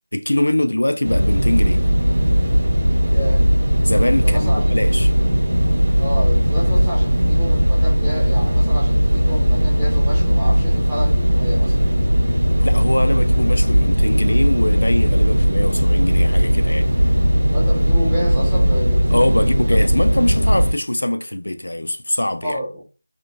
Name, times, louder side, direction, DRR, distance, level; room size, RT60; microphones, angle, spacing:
voice 1, 0.1-1.8 3.8-5.1 12.6-16.9 19.1-22.6, left 1 dB, 80° left, 0.4 m, -22 dB
sound 1, 1.0-20.7, equal, 60° right, 1.2 m, -17 dB
voice 2, 3.1-3.5 4.2-4.7 6.0-11.8 17.5-19.8 22.4-22.8, equal, 5° right, 0.5 m, -30 dB
3.5 x 2.3 x 2.5 m
figure-of-eight pair, 180°, 0 cm